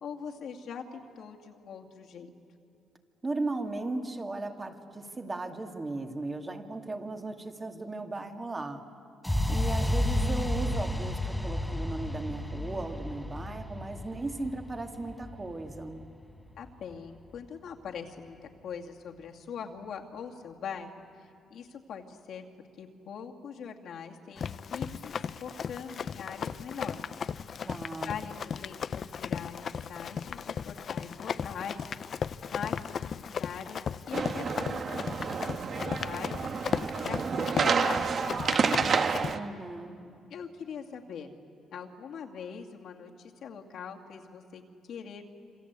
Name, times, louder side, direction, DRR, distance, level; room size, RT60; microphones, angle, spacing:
voice 1, 0.0-2.3 16.6-22.5 22.8-27.1 28.0-31.8 32.5-36.5 37.0-38.9 40.3-41.3 41.7-44.6 44.9-45.2, left 7 dB, 70° left, 2 dB, 2.4 m, -42 dB
voice 2, 3.2-8.9 9.5-16.0 27.6-28.1 39.3-39.9, right 2 dB, 25° right, 4 dB, 2.4 m, -36 dB
sound 1, 9.2-17.2, left 1 dB, 5° left, 1.4 m, -32 dB
Run, 24.4-39.3, left 7 dB, 55° left, 0.7 m, -36 dB
sound 2, 34.1-39.4, right 5 dB, 50° right, 1.3 m, -29 dB
27.0 x 26.5 x 8.3 m, 2.6 s
cardioid pair, 90°, 0 cm